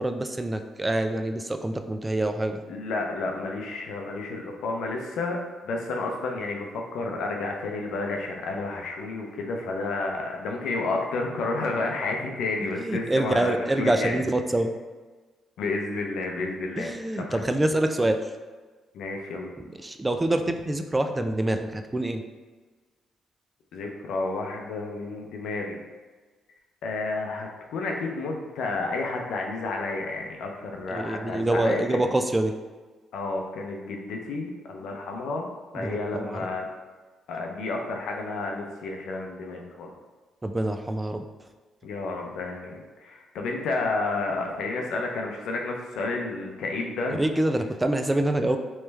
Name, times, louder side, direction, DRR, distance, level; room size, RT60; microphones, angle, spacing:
voice 1, 0.0-2.6 12.8-14.7 16.8-18.2 19.8-22.2 30.9-32.5 35.8-36.4 40.4-41.2 47.2-48.6, right 1 dB, 15° right, 7 dB, 0.3 m, -26 dB
voice 2, 2.7-14.2 15.6-16.9 17.3-17.4 18.9-19.5 23.7-25.8 26.8-32.1 33.1-35.5 35.7-36.7 37.3-39.9 41.8-47.2, left 3 dB, 80° left, 1 dB, 0.6 m, -31 dB
3.2 x 3.1 x 3.3 m, 1.3 s
cardioid pair, 90°, 0 cm